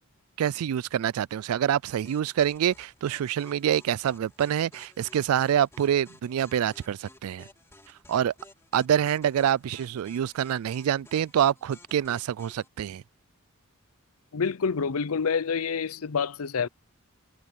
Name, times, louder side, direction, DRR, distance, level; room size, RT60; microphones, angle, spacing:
voice 1, 0.4-7.5 8.1-8.3 8.7-13.0, right 9 dB, 80° right, 0.3 m, -26 dB
sound 1, 2.0-12.7, left 2 dB, 10° left, 2.8 m, -55 dB
voice 2, 14.3-16.7, left 5 dB, 80° left, 0.6 m, -27 dB
head